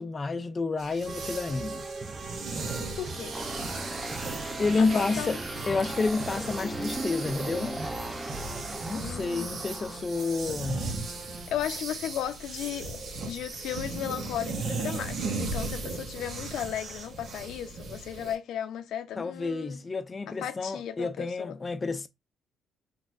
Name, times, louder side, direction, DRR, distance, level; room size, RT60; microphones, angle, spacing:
voice 1, 0.0-1.9 4.6-5.4 5.7-7.8 8.8-10.9 19.2-22.1, left 3 dB, 30° left, 0.5 m, -30 dB
sound 1, 0.8-18.3, right 3 dB, 65° right, 1.2 m, -37 dB
sound 2, 1.1-11.6, right 3 dB, 35° right, 0.7 m, -40 dB
voice 2, 3.0-3.4 4.8-5.4 9.0-9.6 11.5-19.8 20.4-21.6, left 10 dB, 80° left, 0.7 m, -35 dB
sound 3, 3.3-10.0, right 1 dB, 10° right, 1.2 m, -39 dB
4.6 x 4.0 x 2.6 m
cardioid pair, 90°, 0 cm